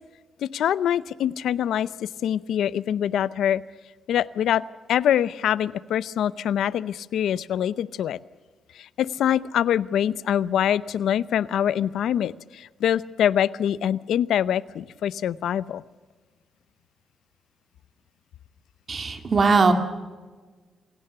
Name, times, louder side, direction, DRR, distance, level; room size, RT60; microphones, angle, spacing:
voice 1, 0.4-3.6 4.1-4.6 4.9-8.2 8.8-15.8, left 10 dB, 85° left, 18 dB, 0.6 m, -24 dB
voice 2, 18.9-19.7, right 4 dB, 40° right, 7 dB, 2.3 m, -19 dB
27.0 x 17.5 x 6.7 m, 1.4 s
cardioid pair, 130°, 0 cm